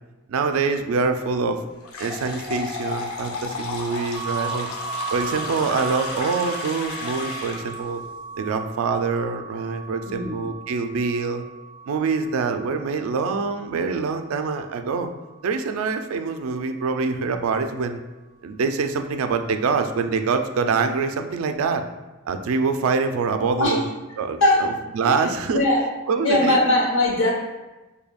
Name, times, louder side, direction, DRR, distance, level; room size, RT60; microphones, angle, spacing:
voice 1, 0.3-1.6 2.0-4.7 5.1-8.0 8.4-11.4 11.9-15.1 15.4-18.0 18.4-21.8 22.3-23.8 24.2-25.6 26.1-26.7, right 4 dB, 80° right, 7 dB, 0.3 m, -25 dB
sound 1, 1.8-7.8, left 3 dB, 80° left, 0.6 m, -33 dB
sound 2, 4.1-15.9, right 5 dB, 20° right, 0.5 m, -37 dB
voice 2, 10.1-10.4 23.6-23.8 24.4-24.7 25.0-25.2 25.5-25.9 26.2-27.3, left 1 dB, 60° left, -3 dB, 0.9 m, -20 dB
4.9 x 2.7 x 2.3 m, 1.1 s
head